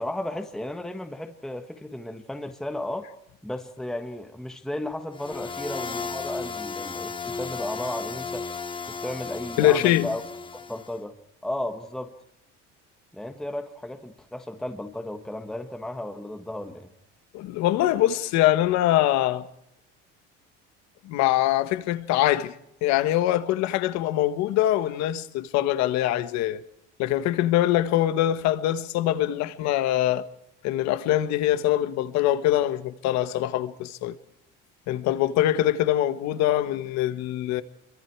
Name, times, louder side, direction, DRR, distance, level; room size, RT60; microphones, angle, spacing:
voice 1, 0.0-3.1 3.4-8.5 9.0-10.2 10.5-11.2 11.4-12.1 13.1-16.9, left 1 dB, ahead, 1.4 m, -34 dB
sound 1, 5.1-11.0, left 5 dB, 15° left, 1.2 m, -35 dB
voice 2, 9.6-10.1 17.3-19.4 21.0-22.5 22.8-26.6 27.0-30.2 30.6-34.2 34.9-37.6, left 13 dB, 65° left, 1.5 m, -23 dB
26.5 x 23.5 x 4.8 m
cardioid pair, 145°, 30 cm